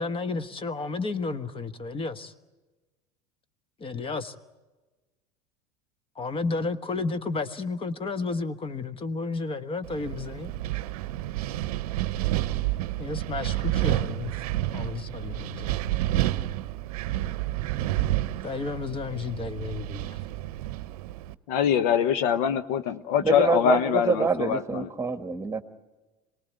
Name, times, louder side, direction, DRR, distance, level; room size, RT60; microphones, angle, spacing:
voice 1, 0.0-2.3 3.8-4.3 6.1-10.5 13.0-14.3 14.7-15.8 18.4-20.2, left 3 dB, 25° left, 1.3 m, -32 dB
Wind, 9.8-21.3, right 15 dB, 70° right, 0.7 m, -30 dB
voice 2, 21.5-24.9, left 9 dB, 65° left, 1.1 m, -24 dB
voice 3, 23.2-25.6, right 4 dB, 15° right, 1.6 m, -26 dB
27.0 x 19.0 x 9.4 m
hypercardioid pair, 80°, 20 cm